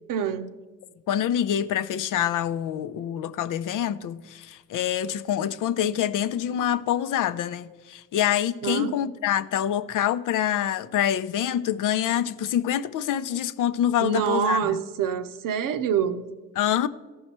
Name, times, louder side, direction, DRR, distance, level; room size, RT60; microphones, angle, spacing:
voice 1, 0.1-0.6 8.6-9.0 14.0-16.3, right 8 dB, 65° right, 0.8 m, -26 dB
voice 2, 1.1-14.8 16.6-16.9, left 10 dB, 60° left, 0.6 m, -26 dB
14.5 x 5.6 x 4.3 m
supercardioid pair, 65°, 35 cm